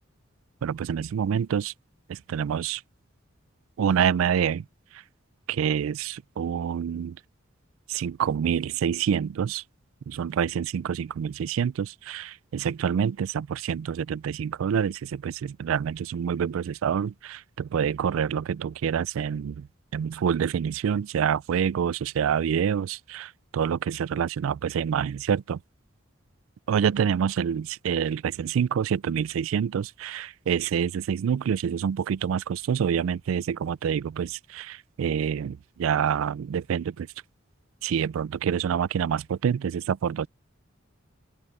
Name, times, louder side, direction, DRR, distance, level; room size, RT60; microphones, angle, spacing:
voice 1, 0.6-1.7 2.1-2.8 3.8-4.7 5.5-7.2 7.9-9.6 10.1-19.7 19.9-25.6 26.7-37.1 37.8-40.3, right 8 dB, 80° right, 0.3 m, -27 dB
open air
head